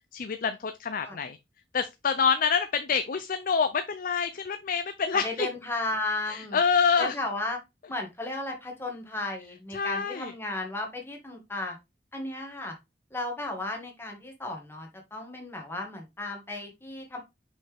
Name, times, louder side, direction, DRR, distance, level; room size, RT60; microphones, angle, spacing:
voice 1, 0.1-1.4 1.7-5.5 6.3-7.1 9.7-10.3, left 6 dB, 50° left, 0.5 m, -27 dB
voice 2, 5.1-6.6 7.0-7.6 7.9-11.8 12.1-12.7 13.1-17.2, left 2 dB, 15° left, 1.7 m, -34 dB
5.5 x 5.4 x 3.5 m
head